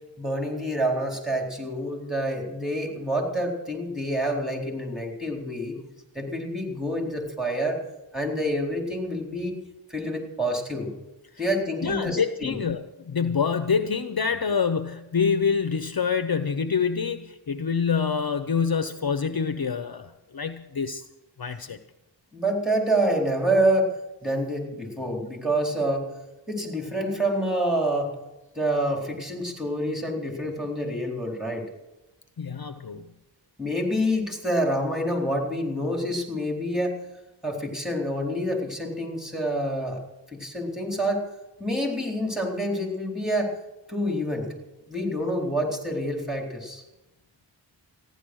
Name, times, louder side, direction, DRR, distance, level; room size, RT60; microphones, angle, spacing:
voice 1, 0.2-5.7 6.1-7.8 8.1-9.6 9.9-10.9 11.4-12.6 22.3-23.9 24.2-26.1 26.5-28.1 28.6-31.6 33.6-37.0 37.4-40.0 40.3-41.3 41.6-43.5 43.9-44.5 44.9-46.8, right 1 dB, ahead, 0 dB, 4.0 m, -27 dB
voice 2, 11.8-21.0 21.4-21.8 32.4-33.1, left 6 dB, 50° left, 9 dB, 0.8 m, -26 dB
15.0 x 11.0 x 6.3 m, 1.0 s
wide cardioid pair, 55°, 46 cm